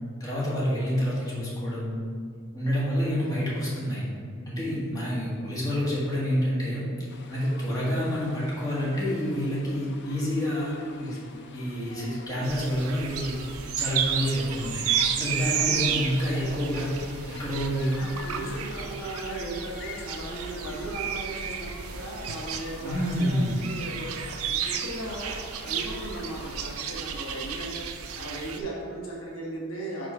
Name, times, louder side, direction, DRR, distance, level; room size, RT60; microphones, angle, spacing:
voice 1, 0.2-2.0 2.5-4.0 4.5-6.8 7.3-11.2 11.5-13.4 13.7-16.9 17.3-18.4 22.8-23.5, equal, 15° left, -8 dB, 1.5 m, -28 dB
voice 2, 3.2-3.6 15.5-15.9 16.2-16.5 17.9-24.2 24.6-27.8 28.2-30.1, right 1 dB, 70° left, -4 dB, 1.3 m, -37 dB
sound 1, 7.1-26.6, left 4 dB, 55° left, 0.5 m, -46 dB
sound 2, 12.4-28.6, right 7 dB, 75° right, 0.5 m, -32 dB
4.9 x 3.9 x 5.4 m, 2.2 s
head